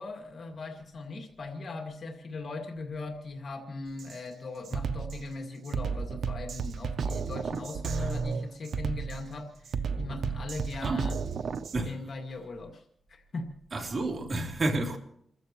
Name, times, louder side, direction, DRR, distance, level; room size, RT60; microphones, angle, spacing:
voice 1, 0.0-11.2 11.8-13.5, left 3 dB, 55° left, 2.1 m, -39 dB
Drum kit, 4.0-4.2 4.7-11.8, right 6 dB, 80° right, 0.6 m, -33 dB
voice 2, 13.7-15.0, right 2 dB, 45° right, 3.0 m, -30 dB
29.0 x 14.5 x 3.1 m
wide cardioid pair, 115°, 0 cm